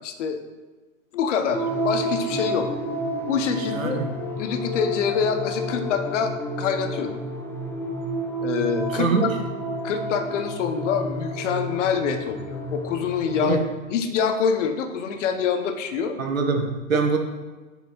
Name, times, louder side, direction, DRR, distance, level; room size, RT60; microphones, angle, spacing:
voice 1, 0.0-0.4 1.1-2.7 3.3-4.0 4.4-7.2 8.4-9.3 9.8-13.6 13.9-16.2 16.9-17.0, left 6 dB, 60° left, 7 dB, 0.9 m, -25 dB
sound 1, 1.5-13.5, right 1 dB, 5° left, 0.6 m, -30 dB
voice 2, 3.7-4.1 8.9-9.2 13.4-13.6 16.2-17.2, right 5 dB, 80° right, 3 dB, 1.3 m, -23 dB
6.9 x 4.6 x 4.3 m, 1.3 s
figure-of-eight pair, 95°, 40 cm